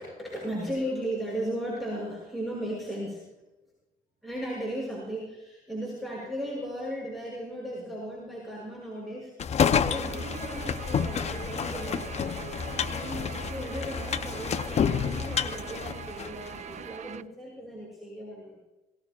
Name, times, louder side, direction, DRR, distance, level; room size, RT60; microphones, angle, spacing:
voice 1, 0.0-3.3 4.2-12.2 12.9-18.6, equal, ahead, -5 dB, 7.1 m, -36 dB
sound 1, 9.4-16.6, left 7 dB, 40° left, 0.8 m, -29 dB
Guitar, 9.8-17.2, right 9 dB, 45° right, 0.6 m, -42 dB
22.0 x 18.5 x 2.5 m, 1.0 s
cardioid pair, 110°, 17 cm